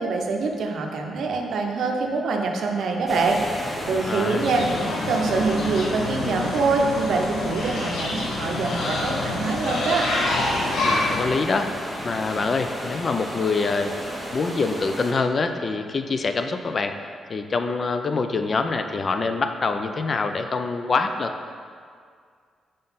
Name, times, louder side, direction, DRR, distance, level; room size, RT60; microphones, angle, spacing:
voice 1, 0.0-4.7 5.0-10.1, right 4 dB, 60° right, 2 dB, 0.6 m, -25 dB
sound 1, 3.1-15.1, equal, 5° left, 0.8 m, -35 dB
voice 2, 4.1-4.5 10.8-13.9 14.3-16.9 17.3-21.3, left 4 dB, 30° left, 7 dB, 0.3 m, -25 dB
sound 2, 4.4-11.2, left 2 dB, 65° left, 0.9 m, -27 dB
5.1 x 3.9 x 5.5 m, 2.1 s
wide cardioid pair, 175°, 0 cm